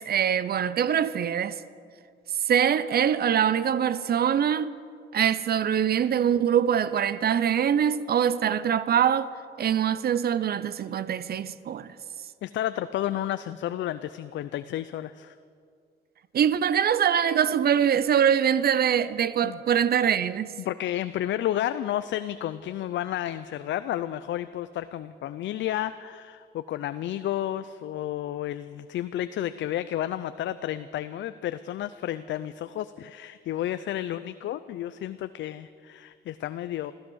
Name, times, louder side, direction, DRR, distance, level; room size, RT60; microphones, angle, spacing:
voice 1, 0.0-1.6 2.4-4.8 5.1-9.3 9.6-11.9 16.3-20.5, right 8 dB, 50° right, 0.6 m, -23 dB
voice 2, 12.4-15.3 19.4-19.8 20.6-36.9, left 12 dB, 70° left, 0.5 m, -31 dB
15.5 x 14.5 x 6.3 m
cardioid pair, 90°, 20 cm